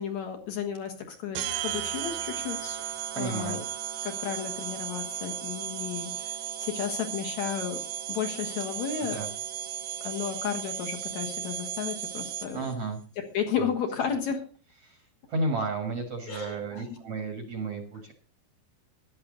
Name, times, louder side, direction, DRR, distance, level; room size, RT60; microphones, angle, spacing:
voice 1, 0.0-2.8 3.1-3.6 4.0-7.8 8.1-9.2 10.0-12.6 13.2-14.4 16.3-17.0, left 8 dB, 60° left, 5 dB, 1.9 m, -33 dB
sound 1, 1.3-12.7, right 11 dB, 80° right, 3.3 m, -35 dB
voice 2, 3.1-3.6 9.0-9.3 12.5-13.0 13.6-13.7 14.8-15.0 15.3-18.1, right 3 dB, 55° right, 4 dB, 1.7 m, -32 dB
14.0 x 11.5 x 3.9 m, 0.39 s
omnidirectional pair, 5.1 m